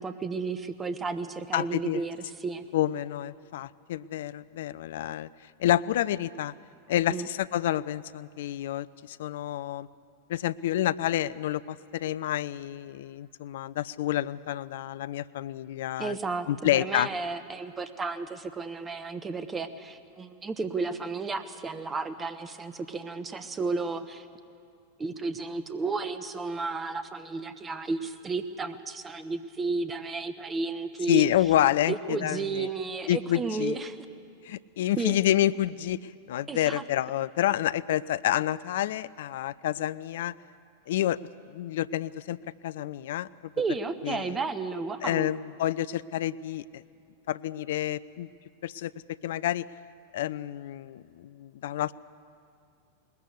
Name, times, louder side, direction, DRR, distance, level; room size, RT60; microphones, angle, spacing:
voice 1, 0.0-2.6 7.1-7.3 16.0-24.3 25.0-31.2 31.9-34.0 35.0-35.2 36.5-36.8 43.6-45.3, right 4 dB, 20° right, 12 dB, 1.1 m, -33 dB
voice 2, 1.5-2.0 2.7-6.5 6.9-9.9 10.3-16.2 16.5-17.1 31.1-32.7 33.1-33.8 34.4-40.3 40.9-41.2 41.5-42.4 42.6-43.5 44.0-44.4 45.0-46.8 47.3-48.3 48.6-49.7 50.1-51.9, left 12 dB, 55° left, 17 dB, 0.4 m, -29 dB
20.5 x 20.0 x 8.1 m, 2.3 s
figure-of-eight pair, 90°, 0 cm